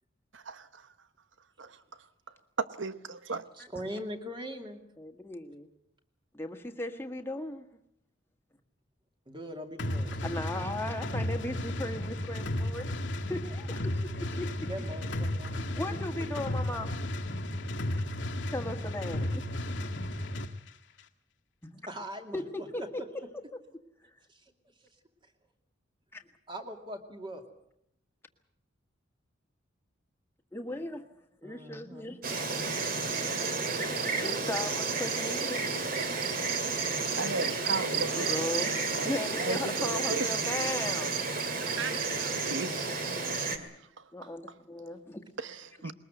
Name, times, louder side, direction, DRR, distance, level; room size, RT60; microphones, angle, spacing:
voice 1, 0.3-0.8 1.6-1.8 2.6-3.4 37.2-38.4 38.9-40.3 41.6-43.0 43.3-43.4 45.4-45.9, right 3 dB, 75° right, 1.0 m, -36 dB
voice 2, 3.6-4.8 9.3-10.4 14.7-16.3 21.9-22.4 22.8-22.9 24.3-24.4 26.5-27.4 31.4-32.2, equal, 25° right, 2.5 m, -41 dB
voice 3, 5.0-5.7 6.3-7.7 10.2-12.9 13.3-14.5 15.8-16.9 18.5-19.9 21.6-21.7 22.3-23.0 26.1-26.2 30.5-31.1 31.4-32.2 34.2-35.6 37.0-37.1 37.5-37.6 38.1-41.1 44.1-45.2 45.8-45.9, left 1 dB, 10° left, 1.7 m, -37 dB
sound 1, 9.8-20.5, left 1 dB, 70° left, 1.6 m, -34 dB
Insect, 32.2-43.6, right 4 dB, 45° right, 2.4 m, -31 dB
21.5 x 20.5 x 8.0 m
head